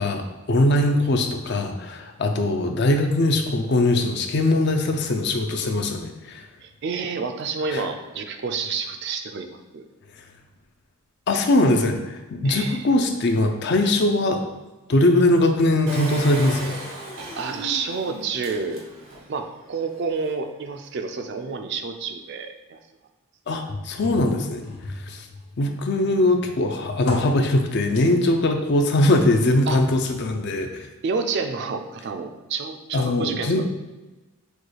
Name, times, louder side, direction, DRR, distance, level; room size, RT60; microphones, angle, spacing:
voice 1, 0.0-6.5 7.7-7.8 11.3-14.4 14.9-16.7 23.5-24.6 24.9-25.3 25.6-30.9 32.9-33.7, left 1 dB, 50° left, 5 dB, 0.4 m, -21 dB
voice 2, 6.6-9.9 12.4-12.9 17.4-18.8 19.3-22.8 29.7-29.8 31.0-33.7, right 5 dB, 50° right, 6 dB, 0.4 m, -29 dB
Engine, 15.9-19.3 19.8-19.9 20.1-20.2, equal, 85° right, 1.1 m, -36 dB
Can Opener, 23.7-25.7 26.1-28.0 29.1-30.0 30.7-30.8, left 2 dB, 90° left, 0.9 m, -36 dB
6.2 x 2.3 x 3.2 m, 1.1 s
head